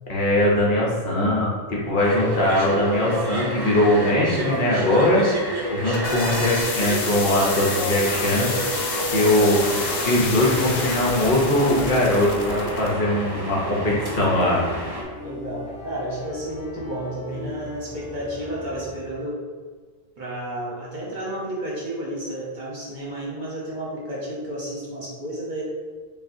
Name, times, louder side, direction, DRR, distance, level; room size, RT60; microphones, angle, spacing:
voice 1, 0.1-5.2 5.7-8.5 9.1-9.6 10.0-14.6, left 1 dB, 55° left, -4 dB, 0.9 m, -21 dB
sound 1, 2.0-15.0, right 1 dB, 30° right, 0.4 m, -30 dB
sound 2, 5.6-12.9, left 3 dB, 80° left, 0.9 m, -29 dB
voice 2, 5.9-6.5 13.8-14.2 15.2-19.4 20.2-25.6, right 1 dB, 50° right, -5 dB, 1.0 m, -32 dB
sound 3, 10.2-19.0, left 1 dB, 5° left, 0.8 m, -39 dB
5.4 x 2.4 x 2.6 m, 1.5 s
omnidirectional pair, 1.1 m